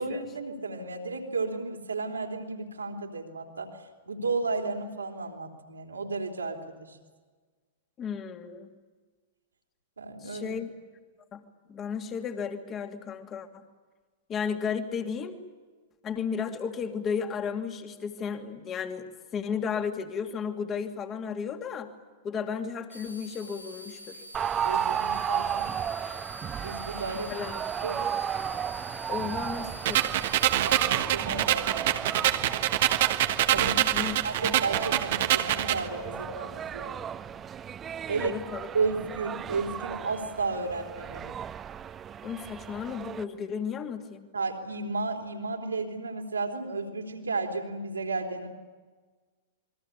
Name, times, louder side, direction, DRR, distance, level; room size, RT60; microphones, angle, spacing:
voice 1, 0.0-3.8 4.1-7.0 10.0-10.6 24.6-25.7 26.6-27.3 27.8-28.0 30.6-32.4 33.5-37.2 38.1-38.3 38.7-41.4 44.3-48.5, right 3 dB, 75° right, 2 dB, 3.7 m, -33 dB
voice 2, 8.0-8.7 10.2-10.7 11.3-11.4 11.7-13.5 14.3-15.4 16.0-21.9 22.2-24.2 27.3-27.6 29.1-30.0 33.5-34.2 34.4-34.5 38.2-38.7 42.2-44.3, left 6 dB, 25° left, 6 dB, 2.6 m, -34 dB
sound 1, 22.9-30.8, left 1 dB, 90° left, 1.9 m, -45 dB
sound 2, 24.3-43.2, right 8 dB, 20° right, 1.3 m, -35 dB
sound 3, 29.8-35.8, right 13 dB, 50° right, 1.4 m, -25 dB
28.0 x 22.0 x 8.6 m, 1.4 s
figure-of-eight pair, 100°, 0 cm